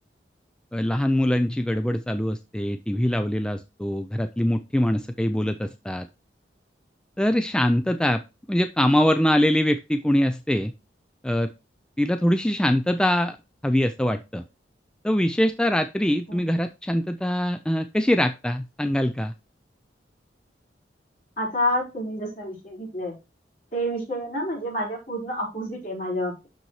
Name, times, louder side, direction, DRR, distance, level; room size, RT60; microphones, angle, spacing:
voice 1, 0.7-6.1 7.2-8.2 8.5-10.7 11.2-11.5 12.0-13.4 13.6-14.4 15.0-19.3, equal, 5° left, 8 dB, 0.3 m, -23 dB
voice 2, 21.4-23.1 23.7-26.5, equal, 50° left, -3 dB, 4.5 m, -28 dB
12.0 x 4.1 x 3.1 m, 0.27 s
head